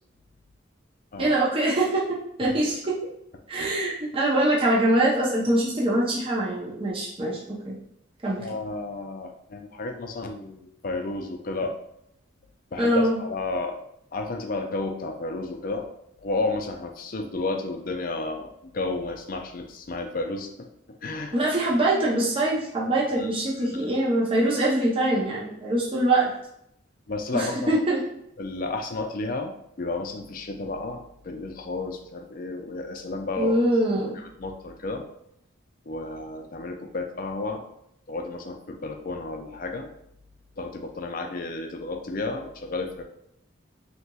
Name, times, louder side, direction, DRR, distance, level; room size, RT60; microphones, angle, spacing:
voice 1, 1.2-2.0 2.4-2.8 3.5-7.7 8.2-8.4 12.8-13.2 21.3-26.3 27.3-28.0 33.4-34.2, right 1 dB, 30° right, -5 dB, 0.6 m, -23 dB
voice 2, 8.4-11.7 12.7-13.8 14.1-15.9 16.2-20.7 21.0-21.3 23.2-23.3 23.6-23.8 27.1-27.7 28.4-29.5 29.8-33.6 34.4-35.0 35.9-37.6 38.1-39.9 40.6-43.0, left 3 dB, 45° left, 4 dB, 0.4 m, -32 dB
4.1 x 2.9 x 2.3 m, 0.75 s
head